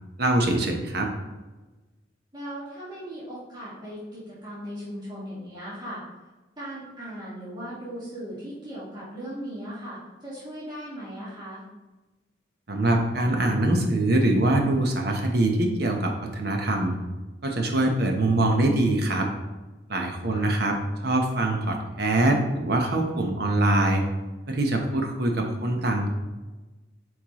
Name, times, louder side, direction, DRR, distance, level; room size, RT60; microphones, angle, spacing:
voice 1, 0.2-1.1 12.7-17.0 17.4-19.3 19.9-20.8 21.0-24.0 24.5-26.1, right 1 dB, 60° right, 2 dB, 1.0 m, -23 dB
voice 2, 2.3-6.0 6.6-11.6 20.3-20.5, equal, 25° right, -10 dB, 1.9 m, -38 dB
8.4 x 4.6 x 3.1 m, 1.1 s
head